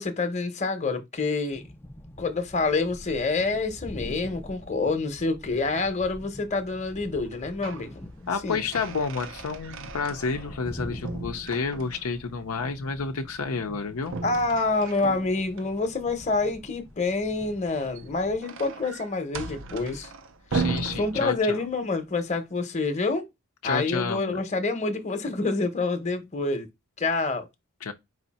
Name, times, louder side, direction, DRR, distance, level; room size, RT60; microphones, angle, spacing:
voice 1, 0.0-1.6 2.2-8.0 8.4-8.6 14.2-20.1 21.0-23.3 23.6-26.7 27.0-27.5, left 3 dB, 35° left, 0.9 m, -27 dB
sound 1, 1.5-18.4, left 1 dB, 10° left, 0.4 m, -45 dB
sound 2, 7.2-7.9 8.3-10.7 11.0-12.2 14.0-15.7 17.7-21.8, right 4 dB, 60° right, 0.6 m, -36 dB
voice 2, 8.3-14.1 20.5-21.6 23.6-24.4 27.8-27.9, left 5 dB, 75° left, 0.6 m, -30 dB
4.9 x 2.7 x 4.1 m
head